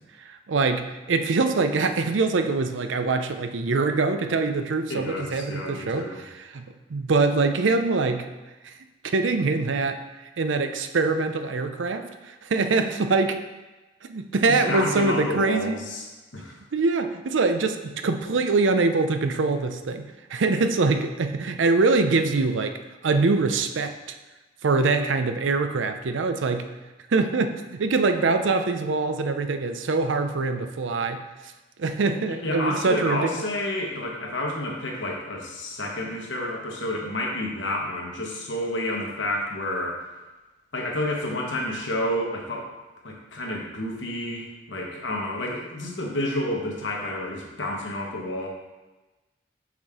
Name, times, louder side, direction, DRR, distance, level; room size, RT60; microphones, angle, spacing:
voice 1, 0.2-8.3 8.6-8.7 9.0-10.0 10.4-13.4 14.0-15.8 16.7-22.8 23.0-23.9 24.6-26.7 27.1-31.2 31.8-33.3, right 3 dB, 85° right, 8 dB, 0.5 m, -24 dB
voice 2, 4.9-6.3 14.5-16.0 16.3-16.6 32.3-40.0 40.7-42.7 43.0-48.5, left 1 dB, 75° left, -1 dB, 1.3 m, -30 dB
6.4 x 5.1 x 3.7 m, 1.1 s
head